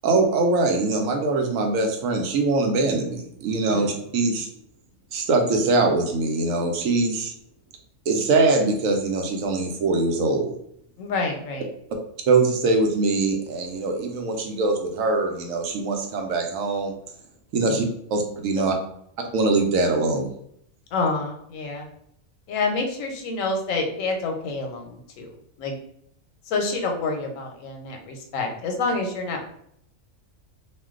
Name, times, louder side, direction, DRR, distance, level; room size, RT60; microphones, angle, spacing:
voice 1, 0.0-4.5 5.1-7.3 8.1-10.5 12.3-17.0 17.5-17.8 18.1-18.7 19.3-20.3, right 3 dB, 85° right, 3 dB, 1.0 m, -22 dB
voice 2, 11.0-11.7 17.6-17.9 18.6-18.7 20.9-21.9 22.5-25.3 25.6-25.7 26.5-29.5, left 3 dB, 85° left, 3 dB, 1.0 m, -28 dB
2.5 x 2.2 x 3.6 m, 0.70 s
omnidirectional pair, 1.4 m